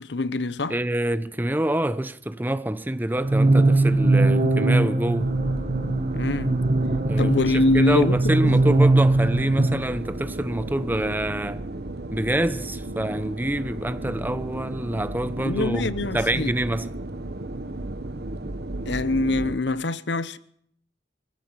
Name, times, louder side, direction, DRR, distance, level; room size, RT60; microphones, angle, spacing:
voice 1, 0.0-0.8 6.1-6.6 7.2-8.6 15.4-16.5 18.8-20.4, left 2 dB, 75° left, 1.0 m, -24 dB
voice 2, 0.7-5.4 7.0-11.6 12.1-16.9, right 1 dB, 10° right, 0.9 m, -26 dB
sound 1, 3.2-9.8, right 2 dB, 45° right, 1.8 m, -20 dB
sound 2, 5.2-19.5, right 2 dB, 60° right, 1.2 m, -34 dB
23.5 x 16.0 x 7.4 m
head